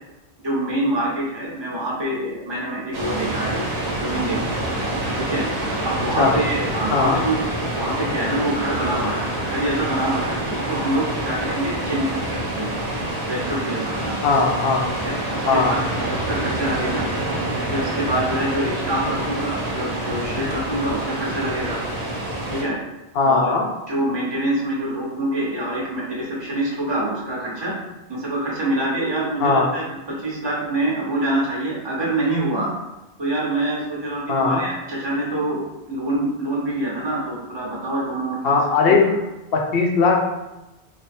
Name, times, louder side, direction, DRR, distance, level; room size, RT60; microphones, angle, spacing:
voice 1, 0.4-3.7 4.0-4.7 5.3-5.4 5.8-7.4 7.7-12.7 13.2-14.2 15.0-15.8 16.1-17.1 17.7-21.8 22.5-22.8 23.2-23.6 23.9-27.7 28.1-32.7 33.2-35.6 35.9-38.6 38.9-39.0, right 1 dB, 25° right, -5 dB, 0.9 m, -25 dB
sound 1, 2.9-22.6, right 1 dB, 65° right, 1.1 m, -27 dB
voice 2, 14.2-14.8 15.5-15.7 23.2-23.6 29.4-29.7 34.3-34.6 38.4-39.1 39.5-40.4, left 4 dB, 65° left, 1 dB, 0.7 m, -18 dB
3.3 x 2.2 x 4.2 m, 0.98 s
omnidirectional pair, 1.1 m